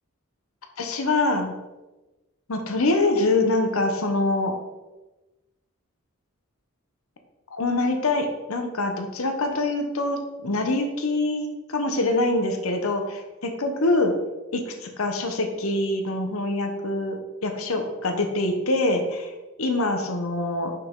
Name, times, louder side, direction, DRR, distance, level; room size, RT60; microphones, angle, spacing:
voice 1, 0.8-1.5 2.5-4.5 7.5-13.2 13.6-14.1 14.5-19.3 19.6-20.7, left 2 dB, 85° left, 5 dB, 1.0 m, -24 dB
5.9 x 5.6 x 3.7 m, 1.1 s
head